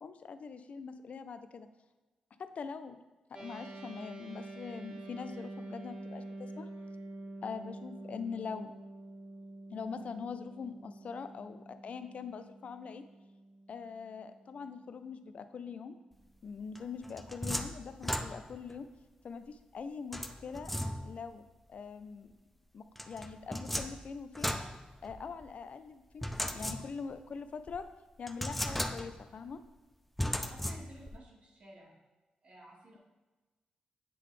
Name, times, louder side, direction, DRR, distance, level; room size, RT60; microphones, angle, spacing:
voice 1, 0.0-1.7 2.4-3.0 3.4-6.7 7.4-8.7 9.7-13.0 13.7-15.9 16.4-18.9 19.2-20.7 21.0-21.4 21.7-22.3 22.7-24.5 25.0-27.9 28.2-29.6, left 5 dB, 60° left, 10 dB, 0.4 m, -43 dB
sound 1, 3.3-14.9, right 2 dB, 35° right, 0.9 m, -47 dB
sound 2, 16.8-18.7 20.1-21.3 23.0-25.5 26.2-27.2 27.7-27.8 28.3-29.3 30.2-31.2, left 1 dB, 5° left, 0.5 m, -37 dB
voice 2, 30.3-31.9 32.4-33.0, right 1 dB, 55° right, -2 dB, 1.7 m, -54 dB
8.3 x 3.9 x 3.3 m, 1.2 s
cardioid pair, 70°, 2 cm